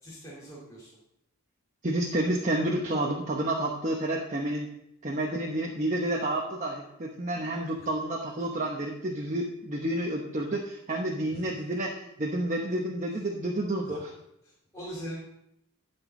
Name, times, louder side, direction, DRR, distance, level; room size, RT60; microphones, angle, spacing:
voice 1, 0.0-1.0 11.3-11.5 13.8-14.0 14.4-15.2, equal, 15° left, -7 dB, 2.6 m, -42 dB
voice 2, 1.8-4.7 5.0-14.1, right 1 dB, 35° right, -1 dB, 1.0 m, -30 dB
12.5 x 4.6 x 7.5 m, 0.83 s
head